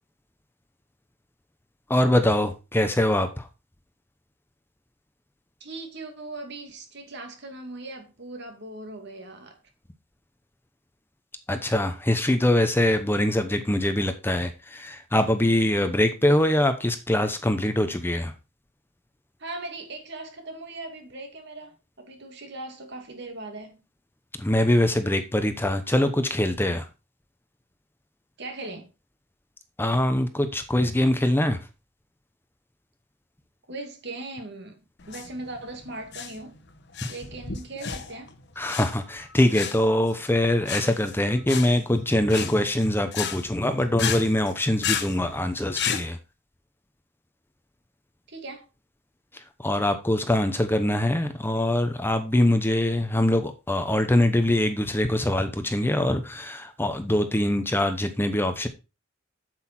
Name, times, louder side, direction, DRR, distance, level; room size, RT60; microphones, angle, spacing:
voice 1, 1.9-3.5 11.5-18.3 24.4-26.9 29.8-31.6 38.6-46.2 49.3-58.7, left 1 dB, 10° left, 0.8 m, -23 dB
voice 2, 5.6-9.6 19.4-23.8 28.4-28.9 33.7-36.6 37.1-38.3 48.3-48.7, right 2 dB, 60° right, 2.4 m, -39 dB
sound 1, 35.0-46.1, left 8 dB, 60° left, 1.2 m, -33 dB
8.3 x 8.0 x 4.4 m
head